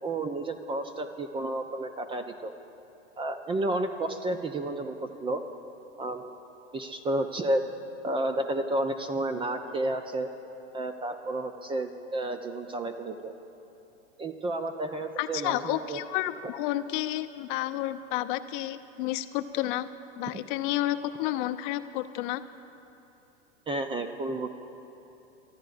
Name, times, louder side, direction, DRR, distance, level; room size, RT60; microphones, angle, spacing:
voice 1, 0.0-2.5 3.2-5.4 6.0-6.3 6.7-7.6 8.0-10.3 10.7-13.3 14.2-16.0 23.7-24.5, right 1 dB, 15° right, 7 dB, 0.4 m, -31 dB
voice 2, 15.2-19.9 20.2-22.4, left 14 dB, 45° left, 9 dB, 0.6 m, -31 dB
28.5 x 13.5 x 2.5 m, 2.9 s
hypercardioid pair, 115°, 35 cm